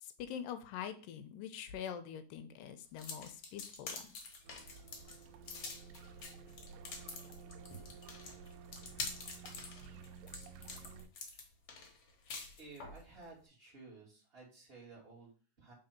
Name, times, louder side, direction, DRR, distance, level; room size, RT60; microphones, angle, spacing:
voice 1, 0.0-4.0, left 8 dB, 85° left, 9 dB, 2.3 m, -44 dB
sound 1, 3.0-13.0, left 4 dB, 55° left, 1.9 m, -46 dB
sound 2, 4.4-11.1, right 5 dB, 85° right, 2.3 m, -53 dB
voice 2, 12.6-15.7, right 3 dB, 20° right, -4 dB, 2.1 m, -55 dB
5.1 x 3.8 x 5.8 m, 0.39 s
omnidirectional pair, 3.8 m